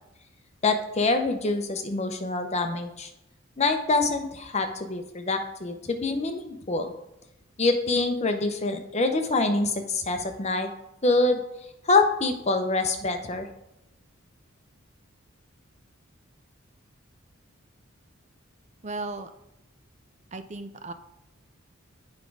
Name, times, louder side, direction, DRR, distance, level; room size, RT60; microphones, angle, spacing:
voice 1, 0.6-3.1 3.6-6.9 7.6-10.7 11.0-11.4 11.8-13.5, left 3 dB, 35° left, 6 dB, 0.8 m, -25 dB
voice 2, 18.8-19.3 20.3-20.9, right 3 dB, 35° right, 9 dB, 0.6 m, -35 dB
8.3 x 5.2 x 4.8 m, 0.86 s
head